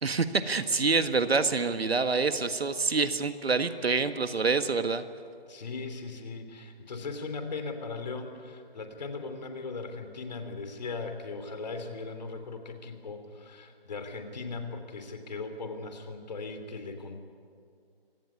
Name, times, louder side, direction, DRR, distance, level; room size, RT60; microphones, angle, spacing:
voice 1, 0.0-5.0, right 4 dB, 75° right, 10 dB, 1.7 m, -26 dB
voice 2, 5.5-17.2, left 3 dB, 45° left, 7 dB, 3.1 m, -38 dB
25.5 x 17.5 x 9.6 m, 2.3 s
figure-of-eight pair, 160°, 31 cm